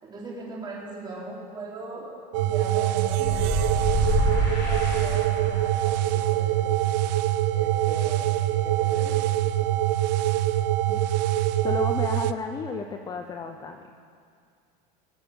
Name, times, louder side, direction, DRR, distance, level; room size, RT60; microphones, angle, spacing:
voice 1, 0.0-2.1 2.4-3.7 4.3-6.8 7.5-9.1 9.6-9.7, right 2 dB, 20° right, -5 dB, 4.1 m, -40 dB
sound 1, 2.3-12.3, right 14 dB, 85° right, 0.7 m, -24 dB
sound 2, 2.9-6.1, right 11 dB, 60° right, 1.0 m, -41 dB
sound 3, 3.2-5.7, left 1 dB, 80° left, 4.2 m, -27 dB
voice 2, 11.6-13.8, left 5 dB, 20° left, 6 dB, 0.5 m, -33 dB
20.5 x 7.3 x 7.0 m, 2.3 s
supercardioid pair, 140°, 21 cm